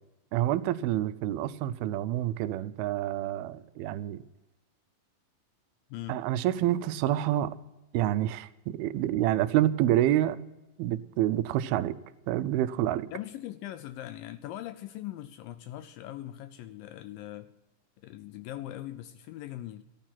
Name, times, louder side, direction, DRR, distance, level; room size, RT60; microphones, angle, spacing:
voice 1, 0.3-4.2 6.1-7.6 7.9-10.4 10.8-12.0 12.3-13.1, right 13 dB, 85° right, 14 dB, 2.6 m, -28 dB
voice 2, 13.1-17.5 18.0-19.8, left 13 dB, 80° left, 12 dB, 2.1 m, -41 dB
14.5 x 13.5 x 5.9 m, 1.0 s
omnidirectional pair, 4.3 m